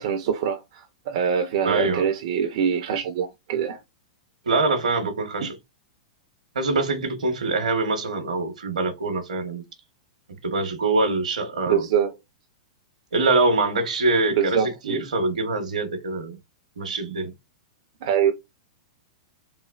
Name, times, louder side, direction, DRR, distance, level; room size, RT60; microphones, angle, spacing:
voice 1, 0.0-3.8 11.7-12.1 14.4-15.1 18.0-18.3, right 8 dB, 55° right, 0.4 m, -24 dB
voice 2, 1.6-2.0 4.5-5.6 6.5-9.6 10.4-11.9 13.1-16.4 16.8-17.3, right 3 dB, 85° right, 0.8 m, -24 dB
3.2 x 2.0 x 2.2 m
hypercardioid pair, 120°, 4 cm